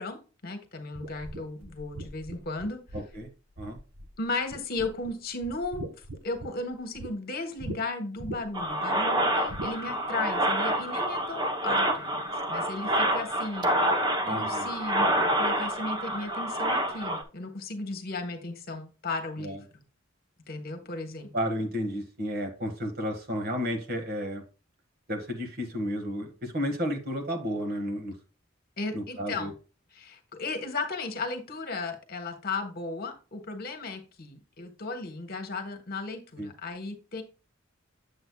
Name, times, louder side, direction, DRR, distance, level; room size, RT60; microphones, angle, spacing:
voice 1, 0.0-2.8 4.2-13.7 14.3-19.8 20.5-21.3 28.8-29.5 29.9-37.2, left 3 dB, 50° left, 6 dB, 1.3 m, -35 dB
sound 1, 0.9-4.2 4.5-5.1 5.4-7.1 7.6-7.8 8.2-8.7 9.5-9.7, right 1 dB, 80° right, 1.4 m, -40 dB
voice 2, 2.9-3.3 3.6-3.8 14.2-14.7 19.4-19.6 21.3-24.4 25.1-28.1 28.9-29.5 36.4-36.5, equal, 50° right, 5 dB, 1.7 m, -32 dB
sound 2, 8.5-17.2, right 1 dB, 20° right, 0.9 m, -27 dB
8.0 x 7.6 x 2.3 m, 0.33 s
head